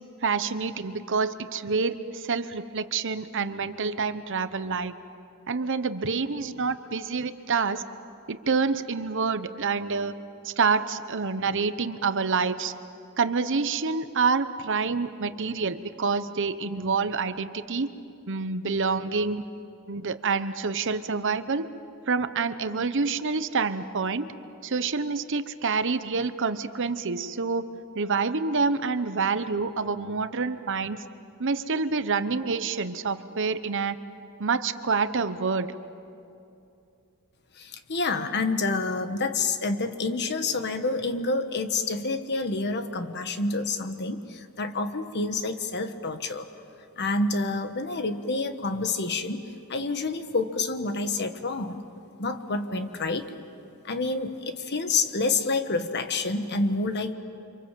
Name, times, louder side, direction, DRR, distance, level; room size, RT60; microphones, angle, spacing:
voice 1, 0.2-4.9 5.5-7.8 8.3-10.1 10.4-12.7 13.2-17.9 18.3-19.4 19.9-21.7 22.1-24.3 24.6-27.7 27.9-31.0 31.4-34.0 34.4-35.7 52.8-52.9, right 4 dB, 60° right, 12 dB, 0.9 m, -27 dB
voice 2, 37.6-46.5 47.0-49.4 49.7-51.8 52.2-53.3 53.8-57.1, left 3 dB, 50° left, 8 dB, 1.4 m, -28 dB
29.5 x 26.0 x 7.5 m, 2.6 s
head